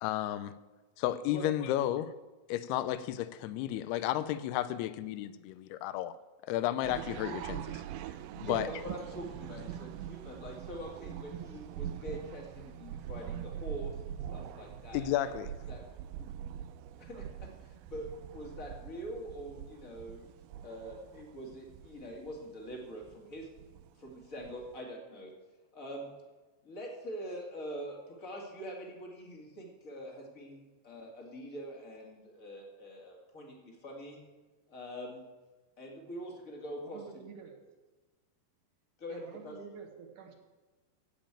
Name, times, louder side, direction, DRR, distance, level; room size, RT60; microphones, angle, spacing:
voice 1, 0.0-0.5 1.0-2.1 2.5-6.1 6.5-7.8 8.4-8.7 14.9-15.5, left 13 dB, 85° left, 2.5 m, -32 dB
sound 1, 6.8-24.8, right 10 dB, 80° right, 2.3 m, -43 dB
voice 2, 8.3-15.3 15.7-15.8 16.2-16.3 17.0-20.3 20.6-23.5 24.0-25.3 25.7-26.1 26.6-34.2 34.7-35.2 35.8-37.0 39.0-39.5, equal, 30° left, 1.5 m, -44 dB
voice 3, 36.8-37.6 39.1-40.3, right 6 dB, 65° right, 2.3 m, -48 dB
15.5 x 5.2 x 8.7 m
omnidirectional pair, 4.7 m